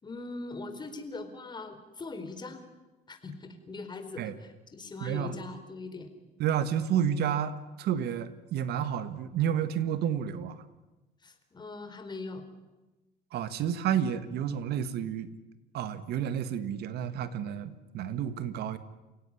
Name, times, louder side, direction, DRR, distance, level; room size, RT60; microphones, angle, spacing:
voice 1, 0.0-2.6 3.1-6.1 11.2-12.4, left 3 dB, 25° left, 7 dB, 4.2 m, -41 dB
voice 2, 5.0-5.4 6.4-10.6 13.3-15.3 15.7-18.8, right 9 dB, 75° right, 12 dB, 1.8 m, -30 dB
29.0 x 17.0 x 10.0 m, 1.1 s
cardioid pair, 110°, 17 cm